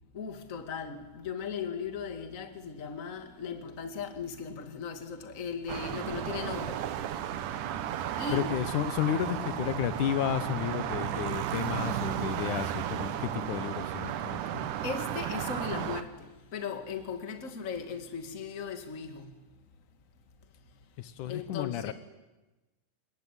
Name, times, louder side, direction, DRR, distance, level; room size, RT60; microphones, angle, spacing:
voice 1, 0.1-6.9 8.2-8.5 14.8-19.3 21.3-21.9, left 6 dB, 30° left, 1.8 m, -37 dB
sound 1, 5.7-16.0, right 11 dB, 65° right, 2.2 m, -34 dB
voice 2, 8.3-14.7 21.0-21.9, left 11 dB, 65° left, 2.1 m, -32 dB
27.0 x 21.5 x 10.0 m
omnidirectional pair, 4.6 m